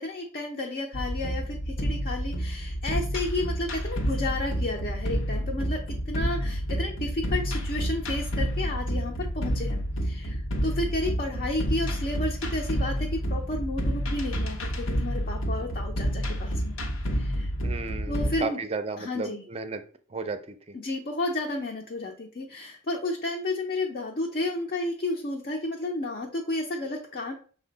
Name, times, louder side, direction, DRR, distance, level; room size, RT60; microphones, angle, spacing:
voice 1, 0.0-16.8 17.1-17.5 18.1-18.6 19.0-19.4 20.7-27.3, left 2 dB, 45° left, 1 dB, 0.6 m, -32 dB
sound 1, 0.9-18.4, equal, 80° left, 0.7 m, -29 dB
voice 2, 17.6-19.8 20.1-20.7, right 4 dB, 30° right, 9 dB, 0.4 m, -34 dB
6.0 x 2.2 x 3.9 m, 0.42 s
head